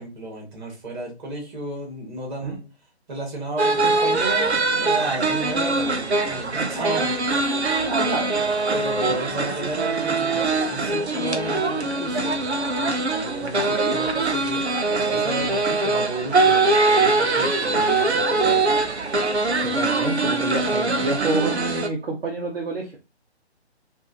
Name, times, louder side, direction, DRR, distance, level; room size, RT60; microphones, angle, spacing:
voice 1, 0.0-2.6 3.1-7.1 8.7-12.5 12.8-14.6 15.1-18.7, right 1 dB, 45° right, -1 dB, 2.2 m, -33 dB
sound 1, 3.6-21.9, right 3 dB, 75° right, 0.8 m, -22 dB
voice 2, 7.8-8.5 9.1-9.2 13.6-14.1 19.6-23.0, right 2 dB, 60° right, -2 dB, 1.1 m, -28 dB
4.5 x 2.7 x 2.8 m, 0.30 s
figure-of-eight pair, 140°, 33 cm